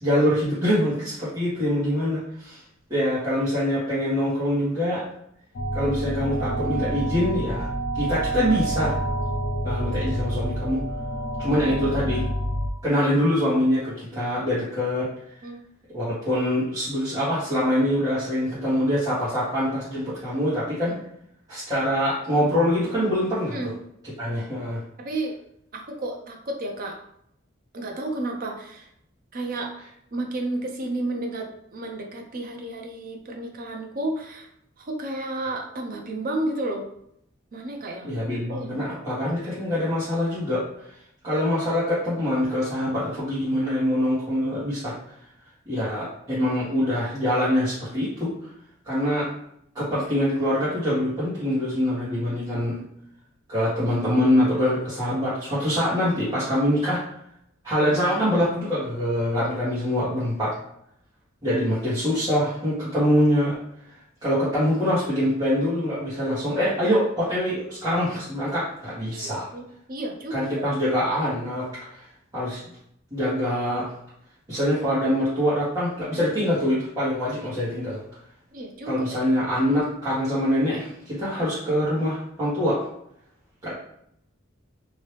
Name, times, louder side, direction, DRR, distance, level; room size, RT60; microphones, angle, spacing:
voice 1, 0.0-2.6 2.9-5.0 5.7-7.7 7.9-9.0 9.6-10.8 11.4-12.2 12.8-15.1 15.9-21.0 21.5-23.7 24.2-24.8 38.0-40.6 41.2-44.9 45.6-48.3 48.8-49.3 49.7-52.8 53.5-57.0 57.6-60.6 61.4-63.6 64.2-69.5 70.3-72.1 72.3-72.6 73.1-73.9 74.5-78.0 78.8-82.8 83.6-83.7, equal, 20° right, -12 dB, 1.3 m, -24 dB
sound 1, 5.5-12.7, right 1 dB, 55° left, 0.5 m, -28 dB
voice 2, 25.0-25.4 25.7-27.0 27.7-28.9 29.3-29.7 30.1-34.5 34.8-36.9 37.5-38.1 38.5-38.8 69.1-70.7 78.5-79.2, right 2 dB, 45° right, 2 dB, 0.6 m, -32 dB
2.9 x 2.8 x 3.3 m, 0.73 s
head